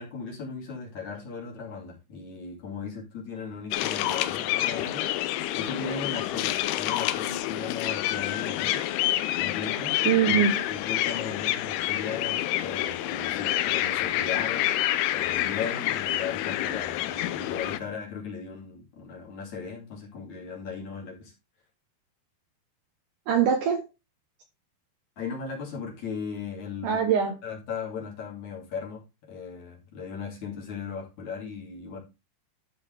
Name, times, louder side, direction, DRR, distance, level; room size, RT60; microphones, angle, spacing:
voice 1, 0.0-5.1 5.6-8.9 9.4-10.0 10.6-14.7 15.1-21.3 25.2-27.0 27.4-32.0, left 5 dB, 50° left, 3.5 m, -37 dB
sound 1, 3.7-17.8, left 14 dB, 85° left, 2.7 m, -28 dB
voice 2, 10.1-10.7 23.3-23.8 26.8-27.3, right 8 dB, 70° right, 2.1 m, -23 dB
12.5 x 5.2 x 3.4 m
omnidirectional pair, 4.7 m